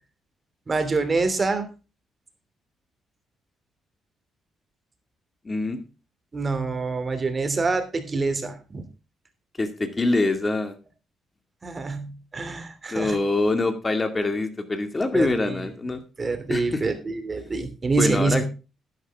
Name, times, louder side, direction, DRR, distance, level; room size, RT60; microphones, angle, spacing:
voice 1, 0.7-1.7 6.3-8.8 11.6-13.2 15.1-15.7 16.2-18.4, right 3 dB, 30° right, 8 dB, 2.9 m, -26 dB
voice 2, 5.4-5.8 9.6-10.7 12.9-16.0 16.5-16.8 18.0-18.4, left 2 dB, 25° left, 8 dB, 2.3 m, -24 dB
11.0 x 10.5 x 3.6 m, 0.32 s
cardioid pair, 90°, 0 cm